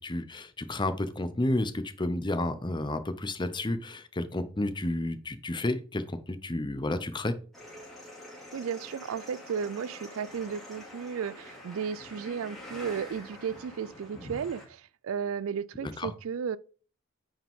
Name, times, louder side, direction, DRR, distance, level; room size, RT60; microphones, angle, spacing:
voice 1, 0.0-7.3 15.8-16.1, left 1 dB, 20° left, 0.7 m, -31 dB
sound 1, 7.5-14.7, left 1 dB, ahead, 2.5 m, -46 dB
voice 2, 8.5-16.6, right 7 dB, 75° right, 0.4 m, -34 dB
8.9 x 5.1 x 3.6 m
head